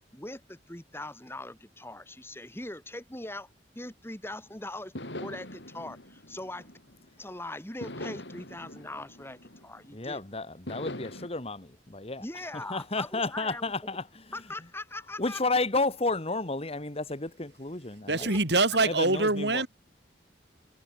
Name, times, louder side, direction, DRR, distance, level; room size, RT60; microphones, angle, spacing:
voice 1, 0.1-3.5 3.8-4.9 5.2-6.7 7.2-10.2 12.2-13.6 14.3-15.4 18.2-18.4, left 2 dB, 15° left, 5.3 m, -41 dB
sound 1, 4.9-7.2 7.8-10.1 10.7-11.3, left 1 dB, 75° left, 7.2 m, -42 dB
voice 2, 9.9-12.2 12.5-14.3 15.2-18.3 18.9-19.7, left 3 dB, 35° left, 1.8 m, -32 dB
voice 3, 18.1-19.7, right 2 dB, 65° right, 4.8 m, -24 dB
head